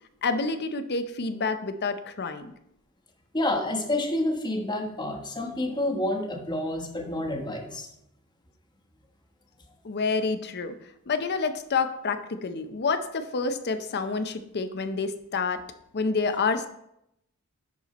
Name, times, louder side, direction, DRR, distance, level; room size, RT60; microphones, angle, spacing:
voice 1, 0.2-2.5 9.8-10.7 11.1-15.6 15.9-16.7, left 4 dB, 50° left, 10 dB, 0.6 m, -28 dB
voice 2, 3.3-7.9, left 1 dB, 20° left, 3 dB, 1.1 m, -29 dB
11.0 x 4.3 x 4.1 m, 0.79 s
head